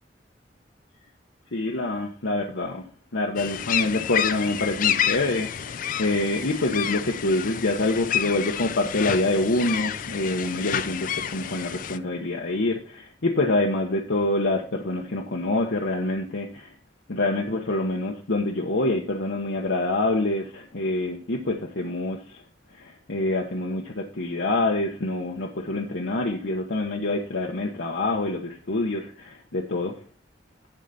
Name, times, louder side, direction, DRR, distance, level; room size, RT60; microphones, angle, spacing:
voice 1, 1.5-2.8 3.1-16.7 17.1-22.4 22.8-30.0, left 2 dB, 90° left, 0 dB, 1.0 m, -26 dB
sound 1, 3.4-12.0, left 9 dB, 50° left, 0.4 m, -29 dB
11.0 x 4.0 x 5.6 m, 0.42 s
head